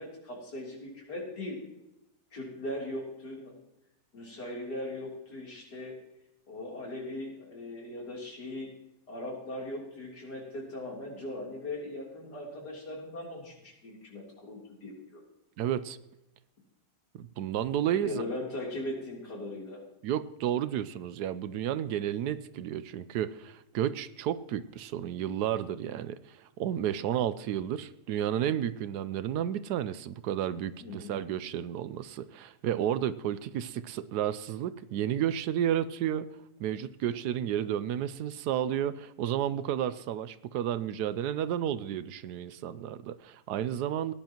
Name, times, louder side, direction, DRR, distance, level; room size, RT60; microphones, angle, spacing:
voice 1, 0.0-1.6 2.3-3.5 4.1-5.9 6.5-8.7 9.1-15.2 18.0-19.8 30.8-31.2, left 1 dB, 85° left, -2 dB, 3.9 m, -39 dB
voice 2, 15.6-16.0 17.2-18.2 20.0-36.3 36.6-44.1, right 10 dB, 80° right, 14 dB, 1.2 m, -32 dB
18.0 x 10.5 x 3.0 m, 0.90 s
omnidirectional pair, 1.7 m